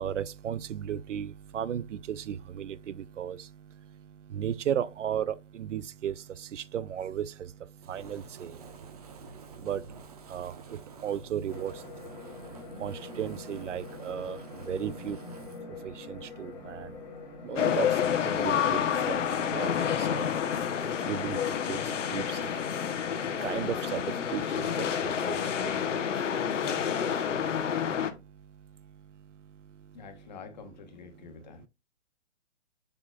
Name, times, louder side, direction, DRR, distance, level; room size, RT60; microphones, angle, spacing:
voice 1, 0.0-30.0 31.2-31.7, right 9 dB, 75° right, 0.6 m, -37 dB
Fire, 7.8-15.6, right 4 dB, 30° right, 1.0 m, -49 dB
sound 1, 11.5-28.1, left 4 dB, 10° left, 1.3 m, -44 dB
sound 2, 17.6-28.1, left 8 dB, 75° left, 1.1 m, -29 dB
voice 2, 29.9-31.7, left 6 dB, 35° left, 1.4 m, -47 dB
6.9 x 5.9 x 2.4 m
hypercardioid pair, 170°, 37 cm